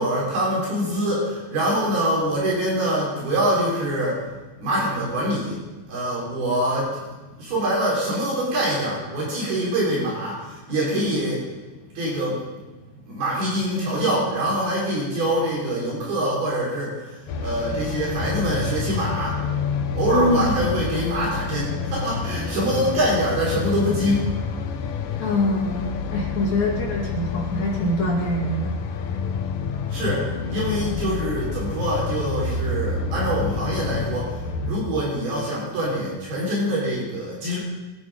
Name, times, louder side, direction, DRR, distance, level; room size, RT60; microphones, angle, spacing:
voice 1, 0.0-4.3 4.6-5.6 5.9-7.0 7.4-11.5 11.9-12.4 13.1-19.4 19.9-24.3 26.3-26.5 29.9-37.6, right 1 dB, 70° right, -5 dB, 6.0 m, -24 dB
sound 1, 17.3-34.7, left 5 dB, 70° left, 2.4 m, -28 dB
voice 2, 20.1-20.5 25.2-28.8, left 1 dB, 50° left, -2 dB, 3.1 m, -24 dB
24.0 x 8.7 x 5.1 m, 1.2 s
omnidirectional pair, 4.5 m